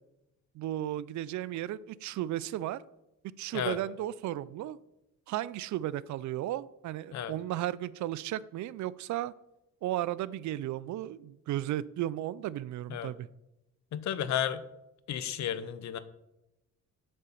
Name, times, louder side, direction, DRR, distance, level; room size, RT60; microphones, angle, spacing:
voice 1, 0.5-2.8 3.4-4.8 5.3-9.3 9.8-13.3, right 13 dB, 70° right, 19 dB, 0.4 m, -34 dB
voice 2, 13.9-14.6 15.1-16.0, left 9 dB, 65° left, 13 dB, 0.8 m, -33 dB
8.7 x 4.3 x 6.9 m, 0.91 s
cardioid pair, 90°, 30 cm